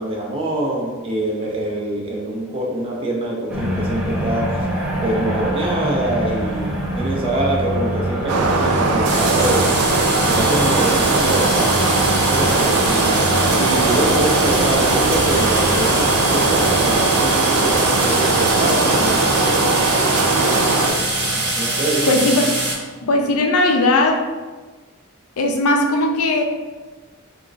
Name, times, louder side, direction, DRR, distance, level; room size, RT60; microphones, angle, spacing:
voice 1, 0.0-4.5 5.0-9.6 10.2-11.8 12.2-13.1 13.5-19.7 21.6-22.2, right 1 dB, 25° right, -2 dB, 0.6 m, -24 dB
sound 1, 3.5-21.5, equal, 5° right, 0.9 m, -26 dB
sound 2, 8.3-20.9, right 3 dB, 90° right, 0.4 m, -19 dB
sound 3, 9.1-22.7, right 2 dB, 50° right, 0.9 m, -23 dB
voice 2, 22.1-22.5 23.0-24.2 25.4-26.4, left 2 dB, 75° left, 3 dB, 0.5 m, -17 dB
3.6 x 3.0 x 2.5 m, 1.3 s
head